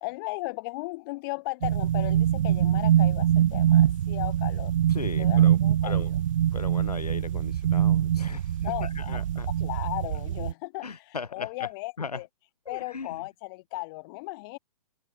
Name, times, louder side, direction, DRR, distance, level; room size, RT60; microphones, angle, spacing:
voice 1, 0.0-4.7 5.2-6.2 8.6-9.2 9.5-12.3 12.7-14.6, left 24 dB, 35° left, 3.0 m, -36 dB
sound 1, 1.6-10.5, right 10 dB, 55° right, 0.5 m, -24 dB
voice 2, 4.9-5.6 5.8-6.1 6.5-9.5 10.8-11.7 12.0-12.2 12.7-13.2, left 5 dB, 85° left, 2.4 m, -38 dB
hypercardioid pair, 135°, 19 cm